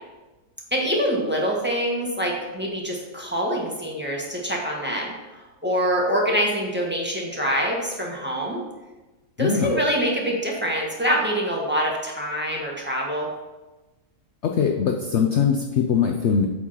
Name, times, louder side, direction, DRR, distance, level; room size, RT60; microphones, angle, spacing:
voice 1, 0.7-8.6 9.4-13.3, equal, 5° right, -2 dB, 1.4 m, -25 dB
voice 2, 9.4-9.7 14.4-16.5, left 6 dB, 60° left, 3 dB, 0.8 m, -21 dB
8.4 x 4.7 x 5.7 m, 1.1 s
omnidirectional pair, 1.6 m